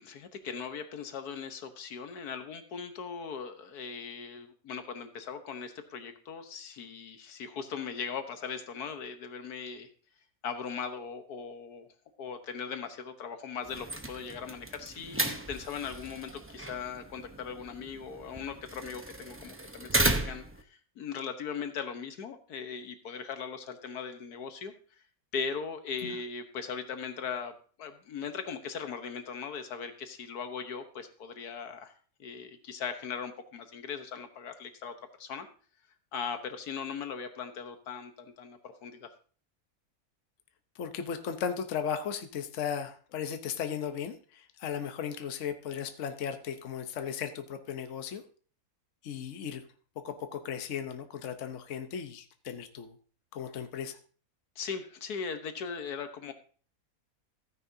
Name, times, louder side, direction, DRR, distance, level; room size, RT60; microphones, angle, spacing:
voice 1, 0.0-9.9 10.4-11.9 12.2-24.7 25.3-27.5 27.8-31.9 32.2-35.5 36.1-39.1 54.6-56.3, left 6 dB, 80° left, 8 dB, 1.6 m, -39 dB
sound 1, 13.6-20.6, right 2 dB, 15° right, 0.5 m, -35 dB
voice 2, 40.7-48.2 49.0-49.6 50.0-52.9 53.3-54.0, left 7 dB, 55° left, 7 dB, 1.2 m, -36 dB
15.0 x 9.6 x 2.7 m, 0.42 s
omnidirectional pair, 1.6 m